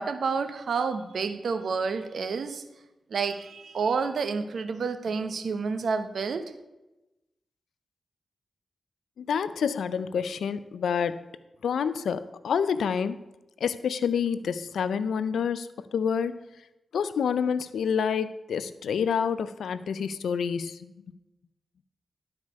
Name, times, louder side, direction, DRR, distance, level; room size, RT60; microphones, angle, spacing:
voice 1, 0.0-2.6 3.1-6.5, right 5 dB, 75° right, 10 dB, 0.7 m, -29 dB
voice 2, 9.2-11.2 11.6-13.2 13.6-16.4 16.9-20.9, left 7 dB, 90° left, 14 dB, 0.4 m, -28 dB
11.5 x 4.8 x 5.4 m, 1.0 s
cardioid pair, 50°, 0 cm